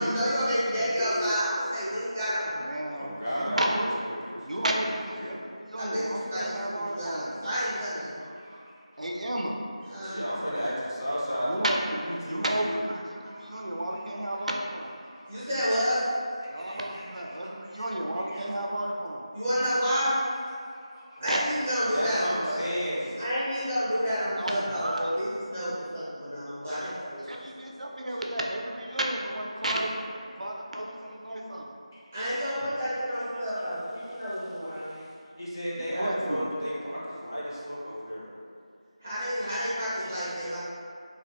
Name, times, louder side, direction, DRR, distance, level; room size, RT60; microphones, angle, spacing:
voice 1, 0.0-2.6 5.8-8.2 9.8-10.2 15.3-16.0 19.3-20.1 21.2-22.6 23.2-27.4 32.1-34.9 39.0-40.6, equal, 20° right, -12 dB, 0.5 m, -30 dB
voice 2, 1.0-1.3 3.0-5.4 7.0-7.1 7.6-7.7 8.2-8.6 8.9-9.2 10.0-12.8 13.2-14.5 15.0-15.5 16.5-18.8 19.5-19.7 20.4-21.2 21.9-23.2 27.1-27.3 28.9-29.0 29.5-29.6 30.5-30.6 30.9-31.3 31.9-32.4 33.9-38.2 40.0-40.4, equal, 35° left, -8 dB, 0.5 m, -36 dB
voice 3, 2.6-3.9 4.4-5.4 5.7-7.5 9.0-9.6 11.4-11.8 12.3-14.9 16.5-19.2 21.2-21.5 24.4-25.2 27.3-29.9 30.4-31.7 35.9-36.5, right 1 dB, 80° right, 0 dB, 0.3 m, -32 dB
2.5 x 2.1 x 2.6 m, 2.3 s
figure-of-eight pair, 180°, 4 cm